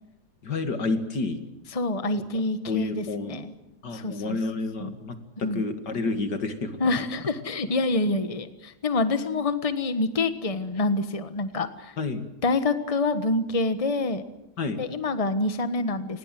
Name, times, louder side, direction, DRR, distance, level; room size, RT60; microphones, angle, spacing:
voice 1, 0.4-1.4 2.3-3.4 3.8-6.8 12.0-12.2 14.6-14.8, left 3 dB, 85° left, 8 dB, 2.8 m, -30 dB
voice 2, 1.7-3.5 3.9-4.4 4.8-4.9 5.4-5.6 6.8-11.9 12.4-14.2 14.8-16.2, left 3 dB, 20° left, 10 dB, 1.4 m, -27 dB
28.5 x 20.5 x 7.7 m, 0.90 s
omnidirectional pair, 1.8 m